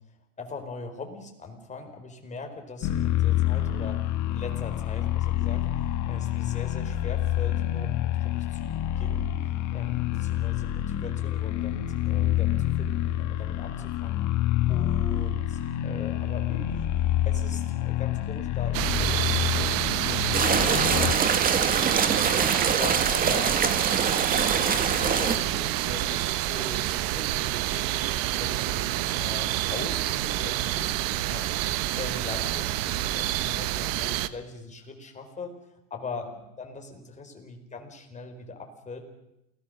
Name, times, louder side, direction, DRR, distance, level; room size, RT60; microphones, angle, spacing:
voice 1, 0.4-8.7 9.0-14.2 14.7-16.9 17.2-22.3 22.8-23.6 24.5-35.5 35.9-39.0, left 3 dB, 15° left, 4 dB, 4.5 m, -41 dB
sound 1, 2.8-21.1, left 12 dB, 40° left, 1.9 m, -27 dB
sound 2, 18.7-34.3, right 15 dB, 45° right, 1.2 m, -28 dB
sound 3, 20.3-25.4, right 5 dB, 20° right, 1.9 m, -25 dB
28.5 x 18.5 x 6.6 m, 0.87 s
supercardioid pair, 135°, 46 cm